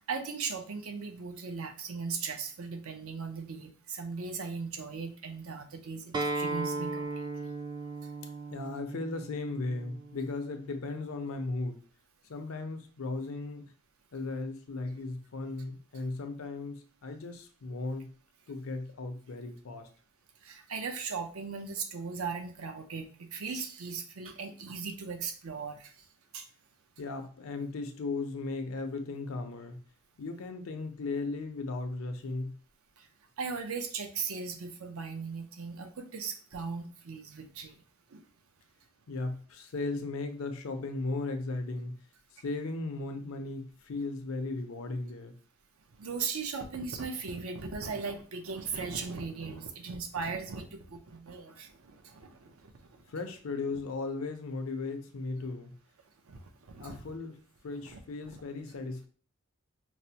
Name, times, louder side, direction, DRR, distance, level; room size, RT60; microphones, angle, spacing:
voice 1, 0.0-7.5 20.4-26.0 26.3-26.5 33.0-33.1 33.4-37.8 38.1-38.2 46.0-53.1 56.3-57.1 57.8-58.4, right 5 dB, 85° right, 5 dB, 0.6 m, -38 dB
Acoustic guitar, 6.1-11.3, right 3 dB, 20° right, 0.3 m, -37 dB
voice 2, 8.5-11.8 12.3-13.6 14.1-18.1 18.5-19.9 27.0-29.8 30.2-32.6 39.1-42.0 42.4-45.3 53.1-55.7 56.8-57.4 57.6-59.1, left 3 dB, 75° left, 6 dB, 0.5 m, -36 dB
4.7 x 2.0 x 2.8 m, 0.41 s
head